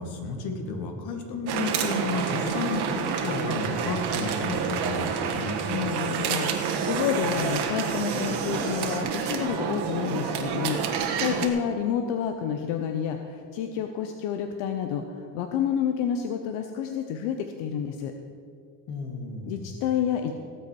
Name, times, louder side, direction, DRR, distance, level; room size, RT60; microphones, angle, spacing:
voice 1, 0.0-5.6 18.9-19.7, left 3 dB, 65° left, 4 dB, 2.2 m, -32 dB
sound 1, 1.5-11.5, right 6 dB, 65° right, 1.6 m, -28 dB
voice 2, 5.7-6.5 6.8-18.1 19.5-20.3, left 8 dB, 90° left, 6 dB, 0.9 m, -29 dB
18.0 x 8.0 x 4.7 m, 2.4 s
cardioid pair, 125°, 42 cm